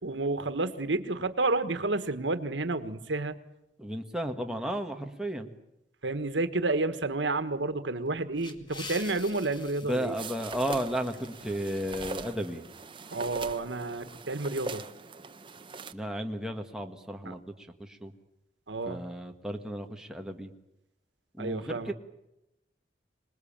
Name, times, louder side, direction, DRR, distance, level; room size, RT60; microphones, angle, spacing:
voice 1, 0.0-3.4 6.0-10.1 13.1-14.8 17.2-17.3 18.7-19.0 21.4-21.9, right 2 dB, 90° right, 11 dB, 1.5 m, -30 dB
voice 2, 3.8-5.5 9.9-12.7 15.9-17.4 18.0-18.1 18.8-20.5 21.4-21.9, equal, 5° right, 3 dB, 1.7 m, -33 dB
sound 1, 8.1-12.6, left 3 dB, 25° left, 2.1 m, -47 dB
sound 2, 10.2-15.9, right 3 dB, 30° right, 1.1 m, -42 dB
26.5 x 20.0 x 8.9 m, 0.88 s
head